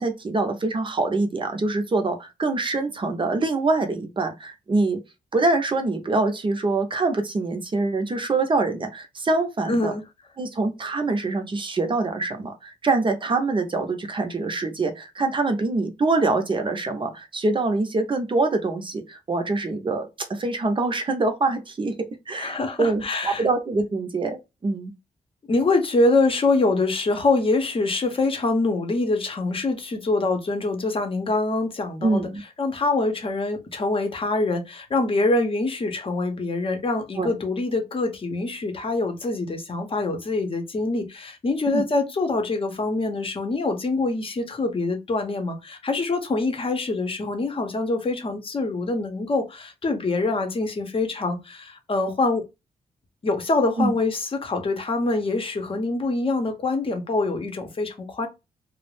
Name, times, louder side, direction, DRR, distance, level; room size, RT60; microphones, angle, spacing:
voice 1, 0.0-5.0 5.3-9.9 10.4-22.0 22.3-24.9 32.0-32.4 37.2-37.3 41.7-41.8 53.8-53.9, right 3 dB, 35° right, 0.6 m, -24 dB
voice 2, 9.7-10.0 22.4-23.4 25.5-32.3 32.6-52.4 53.2-58.3, left 3 dB, 35° left, 0.7 m, -24 dB
2.3 x 2.0 x 3.2 m
cardioid pair, 85°, 15 cm